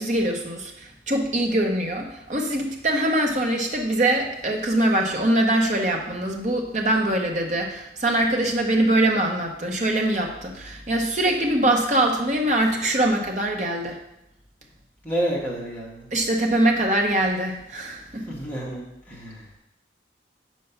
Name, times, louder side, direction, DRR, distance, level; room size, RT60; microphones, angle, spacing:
voice 1, 0.0-14.0 16.1-18.3, right 1 dB, 40° right, 1 dB, 0.9 m, -23 dB
voice 2, 15.0-16.1 18.3-19.5, right 1 dB, 10° left, -5 dB, 1.4 m, -29 dB
5.6 x 4.6 x 5.6 m, 0.86 s
head